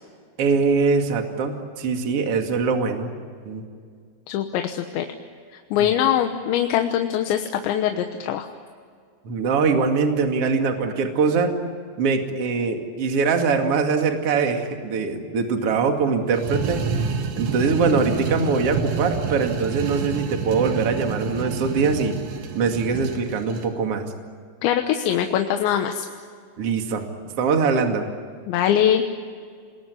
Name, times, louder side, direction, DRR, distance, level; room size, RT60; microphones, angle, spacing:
voice 1, 0.4-3.1 3.4-3.6 5.8-5.9 9.2-11.6 12.0-16.8 17.3-22.2 22.5-24.1 26.6-27.1 27.4-28.1, right 5 dB, 40° right, 4 dB, 2.7 m, -22 dB
voice 2, 4.3-5.1 5.7-8.5 24.6-26.1 28.5-29.1, left 10 dB, 85° left, 5 dB, 3.4 m, -22 dB
sound 1, 16.3-23.7, right 5 dB, 85° right, 4.6 m, -29 dB
28.0 x 20.5 x 9.9 m, 2.1 s
omnidirectional pair, 5.1 m